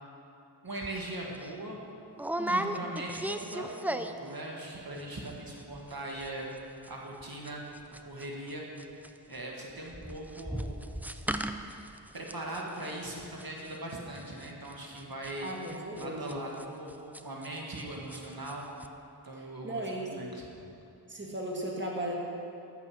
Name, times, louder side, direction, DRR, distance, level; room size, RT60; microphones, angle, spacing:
voice 1, 0.6-1.8 2.5-6.5 6.9-7.6 8.0-8.6 9.3-10.7 12.1-15.5 15.9-18.6 19.2-19.8 20.2-20.4, right 1 dB, 55° right, -2 dB, 1.7 m, -40 dB
sound 1, 0.8-1.0 1.3-1.5 2.2-4.3 4.6-5.0 5.3-5.4 5.6-5.9 6.2-8.5 8.8-17.8 18.1-18.5 18.8-18.9, right 1 dB, 5° right, 0.4 m, -37 dB
voice 2, 2.4-2.9 15.4-16.3 19.4-20.2 21.1-22.2, right 1 dB, 25° right, -2 dB, 1.6 m, -37 dB
14.0 x 6.8 x 6.3 m, 2.7 s
wide cardioid pair, 70°, 41 cm